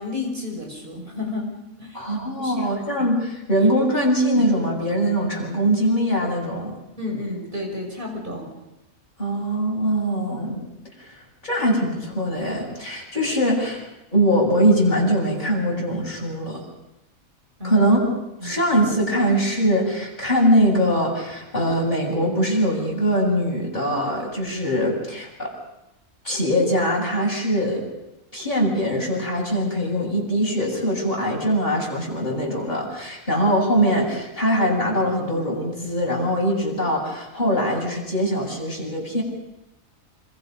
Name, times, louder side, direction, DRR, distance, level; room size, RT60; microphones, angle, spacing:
voice 1, 0.0-3.1 4.3-4.4 7.0-8.5 17.6-17.8 18.4-18.6, left 2 dB, 35° right, 1 dB, 6.3 m, -32 dB
voice 2, 1.9-6.8 9.2-10.7 11.0-11.1 11.4-13.9 14.1-16.6 17.6-18.0 18.4-25.5 26.2-27.9 28.3-39.2, equal, 30° left, -2 dB, 7.8 m, -22 dB
27.0 x 26.0 x 5.4 m, 0.95 s
omnidirectional pair, 1.5 m